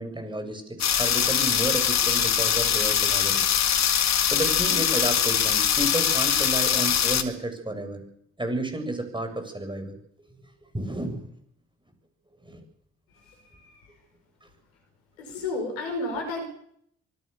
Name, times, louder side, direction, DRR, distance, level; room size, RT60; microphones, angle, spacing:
voice 1, 0.0-3.5 4.1-8.0 8.4-9.9 10.7-11.3 12.5-12.6, right 1 dB, 15° right, 6 dB, 7.9 m, -31 dB
sound 1, 0.8-7.2, left 9 dB, 55° left, 2.5 m, -22 dB
voice 2, 13.1-13.9 15.2-16.4, left 2 dB, 80° left, 5 dB, 5.3 m, -32 dB
25.5 x 18.5 x 7.1 m, 0.70 s
hypercardioid pair, 45°, 32 cm